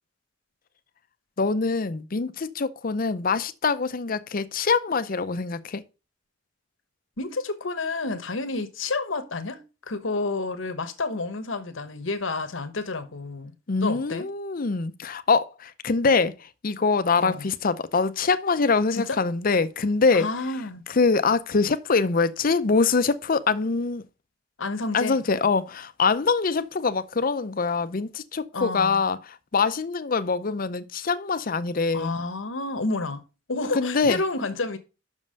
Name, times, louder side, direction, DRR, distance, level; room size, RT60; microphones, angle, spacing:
voice 1, 1.4-5.8 13.7-20.3 20.9-24.0 24.9-32.1 33.7-34.2, left 4 dB, 45° left, 0.6 m, -24 dB
voice 2, 7.2-13.5 13.8-14.3 17.2-17.5 18.9-19.2 20.1-20.8 24.6-25.2 28.5-29.0 31.9-33.2 33.5-34.8, left 3 dB, 85° left, 1.1 m, -30 dB
6.3 x 5.5 x 6.4 m
head